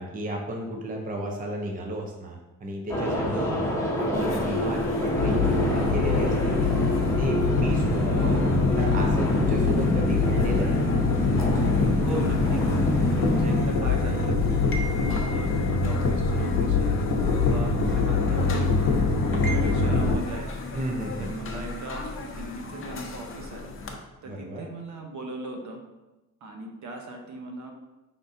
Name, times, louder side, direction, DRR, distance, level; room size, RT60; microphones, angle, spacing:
voice 1, 0.0-3.6 4.0-6.7 7.2-8.2 8.8-11.0 14.0-14.2 20.7-21.6 24.2-24.7, right 1 dB, 25° right, 1 dB, 0.6 m, -33 dB
sound 1, 2.9-13.6, left 1 dB, 10° left, 0.9 m, -26 dB
sound 2, 4.1-23.9, left 2 dB, 40° left, 0.6 m, -38 dB
sound 3, 5.1-20.2, left 4 dB, 70° left, 0.8 m, -25 dB
voice 2, 8.2-8.5 12.0-12.7 13.2-17.0 17.5-18.7 19.1-20.5 21.2-23.7 24.2-25.8 26.4-27.7, right 2 dB, 60° right, 2 dB, 0.8 m, -37 dB
5.2 x 3.6 x 2.6 m, 1.1 s
cardioid pair, 115°, 34 cm